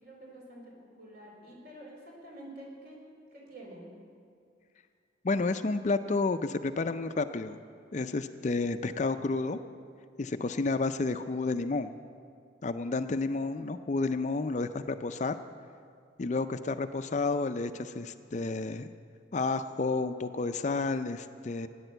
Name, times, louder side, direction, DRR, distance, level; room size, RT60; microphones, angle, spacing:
voice 1, 0.0-3.0 3.3-3.9 12.8-13.1, right 1 dB, 50° right, -2 dB, 4.0 m, -48 dB
voice 2, 5.2-7.6 7.9-9.6 10.2-11.9 12.6-15.4 16.2-18.9 19.3-21.7, left 3 dB, 35° left, 10 dB, 0.4 m, -31 dB
15.0 x 10.0 x 7.9 m, 2.2 s
head